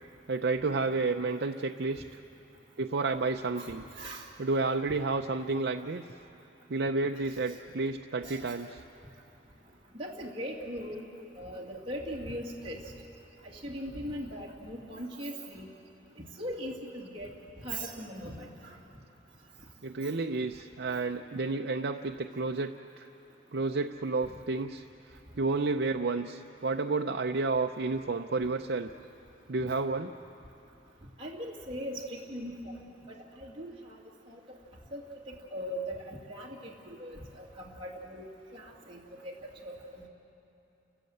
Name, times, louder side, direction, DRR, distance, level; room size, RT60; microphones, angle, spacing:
voice 1, 0.3-2.0 2.8-3.8 4.4-6.0 6.7-8.8 19.8-23.1 23.5-24.8 25.4-28.9 29.5-30.1, right 3 dB, 65° right, 4 dB, 0.6 m, -31 dB
voice 2, 8.2-8.6 9.9-11.0 11.4-12.8 13.5-15.7 16.4-17.3 17.6-18.8 31.2-32.8 33.1-34.0 34.3-34.4 34.9-37.5 37.8-39.3 39.6-40.1, equal, 30° right, -4 dB, 2.4 m, -40 dB
29.5 x 15.0 x 7.9 m, 2.8 s
head